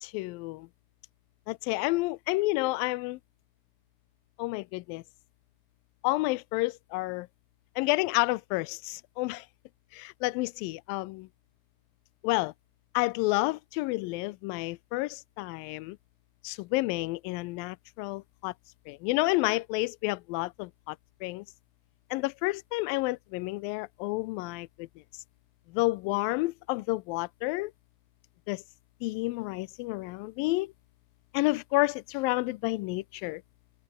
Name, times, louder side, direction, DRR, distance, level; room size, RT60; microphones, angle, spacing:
voice 1, 0.0-0.7 1.5-3.2 4.4-5.0 6.0-7.3 7.8-9.5 9.9-11.3 12.2-12.5 12.9-16.0 16.4-18.5 18.9-21.0 21.2-21.5 22.1-24.9 25.7-27.7 28.5-28.6 29.0-30.7 31.3-33.4, left 22 dB, 80° left, 2.2 m, -30 dB
omnidirectional pair, 4.4 m